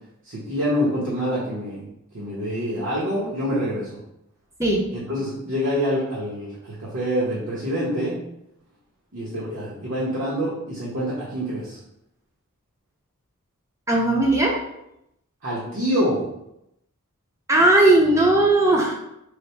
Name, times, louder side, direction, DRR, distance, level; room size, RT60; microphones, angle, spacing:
voice 1, 0.3-4.0 4.9-8.2 9.1-11.8 15.4-16.2, equal, 65° right, -7 dB, 0.9 m, -26 dB
voice 2, 13.9-14.5 17.5-18.9, right 2 dB, 15° right, -2 dB, 0.6 m, -17 dB
3.3 x 2.1 x 4.2 m, 0.82 s
head